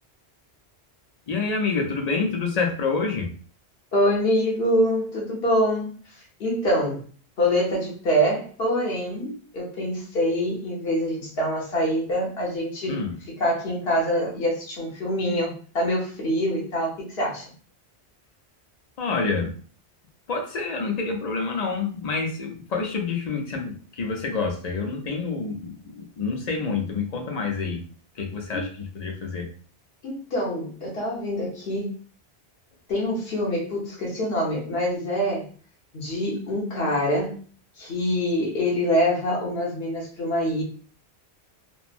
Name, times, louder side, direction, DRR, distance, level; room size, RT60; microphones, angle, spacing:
voice 1, 1.3-3.3 12.9-13.2 19.0-19.5 20.3-27.8 28.2-29.5, left 4 dB, 45° left, 2 dB, 0.6 m, -27 dB
voice 2, 3.9-5.9 6.4-7.0 7.4-13.0 13.3-17.5 28.5-28.6 30.0-31.9 32.9-35.5 35.9-37.4 37.8-40.6, equal, 65° left, -2 dB, 1.2 m, -25 dB
3.1 x 2.1 x 2.4 m, 0.43 s
omnidirectional pair, 1.1 m